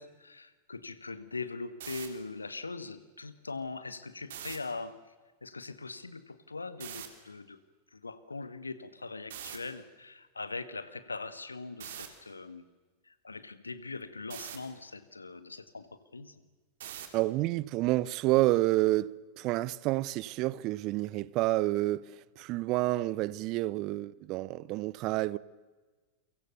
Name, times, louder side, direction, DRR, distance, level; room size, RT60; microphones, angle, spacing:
voice 1, 0.0-5.0 5.4-7.6 7.9-12.6 13.0-15.9 16.1-16.4, left 3 dB, 80° left, 1.7 m, -41 dB
sound 1, 1.7-2.1 4.2-4.6 6.8-7.1 9.3-9.6 11.8-12.1 14.3-14.6 16.8-17.2, right 11 dB, 60° right, 3.5 m, -42 dB
voice 2, 17.1-25.4, right 18 dB, 40° right, 0.7 m, -29 dB
30.0 x 24.5 x 6.9 m
figure-of-eight pair, 90°, 0 cm